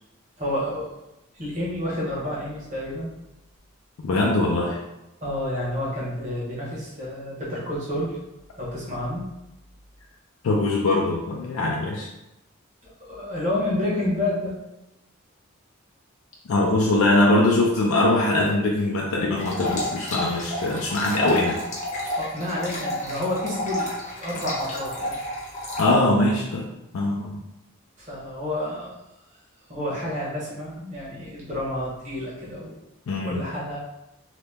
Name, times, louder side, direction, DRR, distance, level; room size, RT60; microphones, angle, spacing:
voice 1, 0.4-0.9 1.4-3.1 5.2-8.2 8.6-9.3 13.1-14.6 22.1-25.2 28.0-28.9 29.7-32.8 33.2-33.8, left 1 dB, 35° right, -7 dB, 1.0 m, -29 dB
voice 2, 4.0-4.8 10.4-12.1 16.5-21.6 25.8-26.7 26.9-27.4 33.1-33.5, left 2 dB, 85° left, -2 dB, 0.4 m, -22 dB
sound 1, 19.4-25.9, left 1 dB, 35° left, 0.6 m, -30 dB
2.8 x 2.1 x 3.4 m, 0.93 s
head